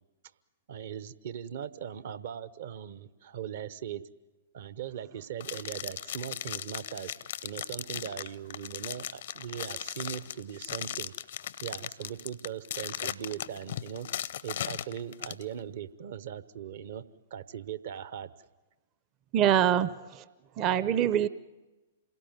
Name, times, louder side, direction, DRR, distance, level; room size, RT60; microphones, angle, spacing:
voice 1, 0.7-4.0 4.5-11.1 11.6-14.1 14.4-17.0 17.3-18.3, right 9 dB, 55° right, 15 dB, 1.0 m, -39 dB
sound 1, 5.4-15.4, left 10 dB, 60° left, 0.7 m, -37 dB
voice 2, 19.3-20.2 20.6-21.3, right 10 dB, 35° right, 16 dB, 0.7 m, -25 dB
27.5 x 18.0 x 9.1 m, 1.2 s
figure-of-eight pair, 110°, 0 cm